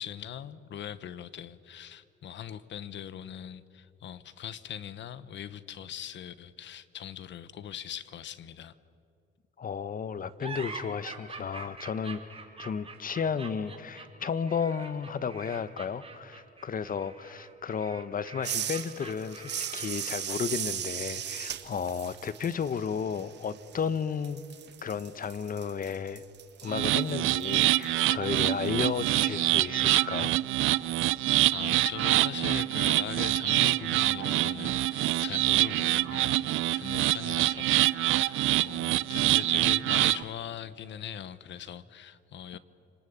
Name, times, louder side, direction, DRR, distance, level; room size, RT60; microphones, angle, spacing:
voice 1, 0.0-8.7 31.5-42.6, left 9 dB, 65° left, 16 dB, 1.1 m, -40 dB
voice 2, 9.6-12.2 12.6-24.4 24.8-26.2 26.6-30.3, left 6 dB, 45° left, 16 dB, 1.1 m, -33 dB
sound 1, 10.4-20.2, right 4 dB, 30° right, 3.8 m, -45 dB
sound 2, 18.4-24.0 24.2-29.1, right 9 dB, 60° right, 1.5 m, -38 dB
sound 3, 26.7-40.2, right 16 dB, 85° right, 0.6 m, -26 dB
28.5 x 20.0 x 8.7 m, 2.7 s
cardioid pair, 90°, 20 cm